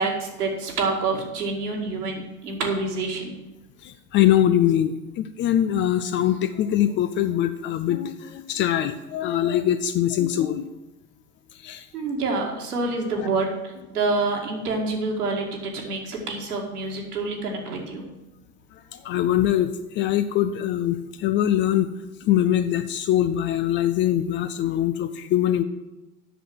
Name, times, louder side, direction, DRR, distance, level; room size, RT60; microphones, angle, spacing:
voice 1, 0.0-3.4 11.9-18.0, right 3 dB, 75° right, 0 dB, 2.2 m, -27 dB
voice 2, 3.8-10.6 11.6-11.9 13.2-13.3 18.9-21.9 22.2-25.6, left 11 dB, 25° left, 10 dB, 0.4 m, -23 dB
7.9 x 6.5 x 7.6 m, 1.1 s
figure-of-eight pair, 80°, 46 cm